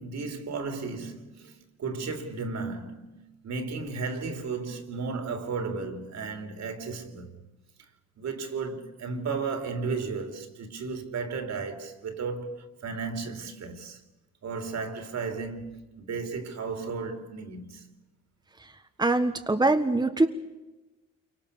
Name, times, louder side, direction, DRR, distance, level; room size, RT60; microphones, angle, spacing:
voice 1, 0.0-7.3 8.2-14.0 14.4-17.9, right 4 dB, 60° right, 3.6 m, -34 dB
voice 2, 19.0-20.3, right 2 dB, 15° right, 1.6 m, -23 dB
28.5 x 24.5 x 7.1 m
cardioid pair, 90°, 30 cm